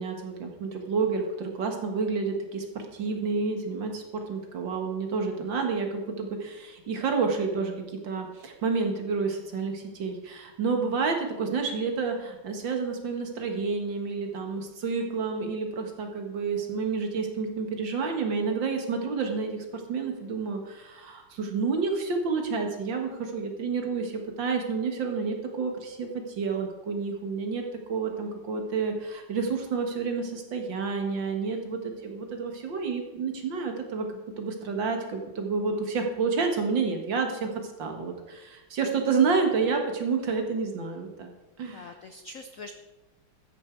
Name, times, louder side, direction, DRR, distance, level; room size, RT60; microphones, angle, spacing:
voice 1, 0.0-7.7 8.0-27.6 27.9-34.1 34.4-41.3 41.6-41.9, right 4 dB, 60° right, 4 dB, 2.3 m, -29 dB
voice 2, 41.7-42.7, left 3 dB, 65° left, 7 dB, 0.8 m, -43 dB
13.5 x 9.9 x 4.7 m, 1.1 s
omnidirectional pair, 2.3 m